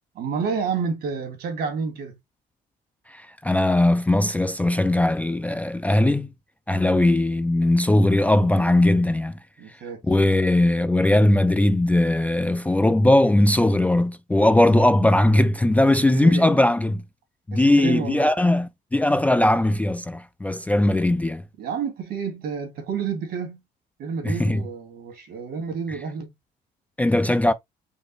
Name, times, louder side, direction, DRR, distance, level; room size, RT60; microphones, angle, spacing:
voice 1, 0.1-2.2 6.8-7.1 9.6-10.2 16.1-16.6 17.5-18.3 21.6-23.6 24.0-26.3, right 5 dB, 70° right, 2.1 m, -30 dB
voice 2, 3.1-6.3 6.7-9.3 10.1-17.0 17.5-21.4 24.2-24.6 27.0-27.5, left 1 dB, 10° left, 0.4 m, -19 dB
5.2 x 2.1 x 4.0 m
cardioid pair, 110°, 17 cm